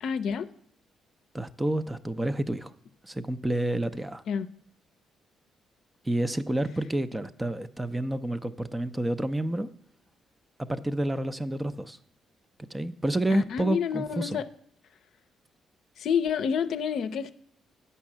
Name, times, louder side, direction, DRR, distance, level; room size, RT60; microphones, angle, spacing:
voice 1, 0.0-0.5 4.3-4.5 13.3-14.4 16.0-17.3, left 7 dB, 70° left, 11 dB, 0.5 m, -28 dB
voice 2, 1.3-2.7 3.0-4.2 6.0-9.7 10.6-12.0 12.7-14.4, right 1 dB, 15° right, 13 dB, 0.5 m, -29 dB
8.6 x 5.5 x 7.3 m, 0.66 s
cardioid pair, 90°, 0 cm